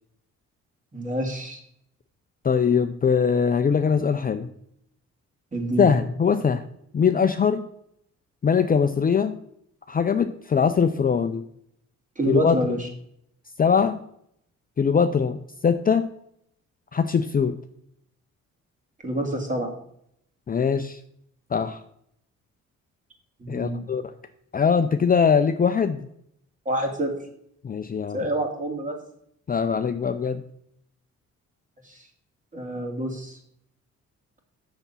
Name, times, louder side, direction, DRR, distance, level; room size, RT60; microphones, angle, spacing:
voice 1, 0.9-1.6 5.5-5.9 12.2-12.9 19.0-19.7 23.4-23.8 26.7-27.1 28.1-29.0 31.8-32.0 32.5-33.4, right 1 dB, 25° right, 2 dB, 2.6 m, -27 dB
voice 2, 2.4-4.5 5.8-6.6 6.9-7.7 8.4-9.4 9.9-11.4 12.3-12.8 13.6-14.0 14.8-15.4 15.6-16.1 16.9-17.6 20.5-21.0 21.5-21.8 23.5-24.1 24.5-26.0 27.6-28.3 29.5-30.4, left 6 dB, 30° left, 8 dB, 0.5 m, -22 dB
7.0 x 6.8 x 5.7 m, 0.70 s
cardioid pair, 90°, 30 cm